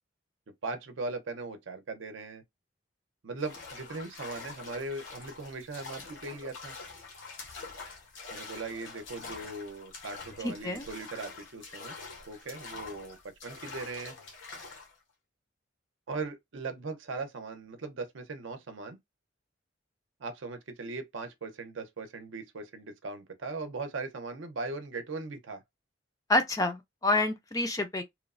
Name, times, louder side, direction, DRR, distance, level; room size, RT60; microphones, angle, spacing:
voice 1, 0.6-2.4 3.2-6.7 8.3-12.0 12.3-14.2 16.1-19.0 20.2-25.6, right 3 dB, 80° right, 0.6 m, -39 dB
sound 1, 3.4-15.0, left 4 dB, 80° left, 0.9 m, -45 dB
voice 2, 10.4-10.8 26.3-28.0, left 2 dB, 15° left, 0.3 m, -28 dB
2.9 x 2.0 x 2.4 m
head